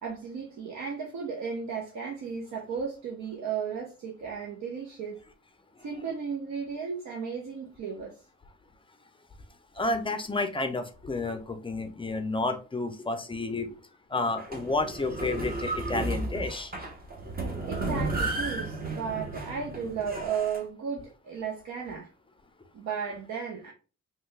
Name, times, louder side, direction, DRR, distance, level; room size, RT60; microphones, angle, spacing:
voice 1, 0.0-5.2 5.8-8.2 17.7-22.1 22.7-23.7, right 6 dB, 65° right, 0.8 m, -34 dB
voice 2, 9.8-13.8 14.1-16.7, left 2 dB, 15° left, 0.5 m, -30 dB
sound 1, 14.4-20.6, right 2 dB, 30° right, 0.9 m, -33 dB
3.3 x 2.2 x 3.1 m
cardioid pair, 90°, 30 cm